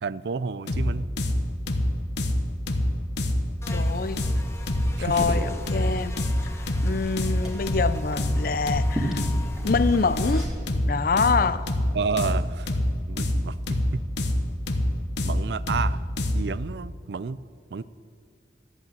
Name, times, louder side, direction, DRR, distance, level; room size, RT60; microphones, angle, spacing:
voice 1, 0.0-1.1 5.0-5.4 11.9-12.7 13.1-14.1 15.2-16.0 16.3-17.4 17.7-17.8, right 5 dB, 65° right, 18 dB, 0.4 m, -31 dB
sound 1, 0.7-16.6, left 1 dB, 70° left, 1.1 m, -26 dB
Buzz, 3.6-10.5, left 3 dB, 15° left, 1.2 m, -45 dB
voice 2, 3.7-4.2 5.0-6.2 6.8-9.2 9.6-10.4 10.9-11.6, left 4 dB, 50° left, 15 dB, 0.5 m, -25 dB
Liquid, 4.0-10.8, equal, 5° right, 2.6 m, -36 dB
13.5 x 8.3 x 9.2 m, 2.1 s
head